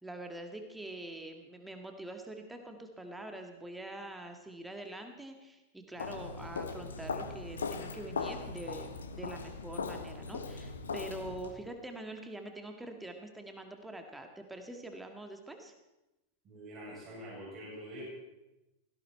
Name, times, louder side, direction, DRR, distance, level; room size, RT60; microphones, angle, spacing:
voice 1, 0.0-15.7, right 1 dB, 5° right, 5 dB, 1.8 m, -45 dB
Walk footsteps, 6.0-11.5, left 4 dB, 70° left, 1.3 m, -39 dB
voice 2, 16.4-18.0, equal, 30° right, -5 dB, 7.6 m, -45 dB
17.0 x 17.0 x 4.5 m, 0.99 s
figure-of-eight pair, 90°, 0 cm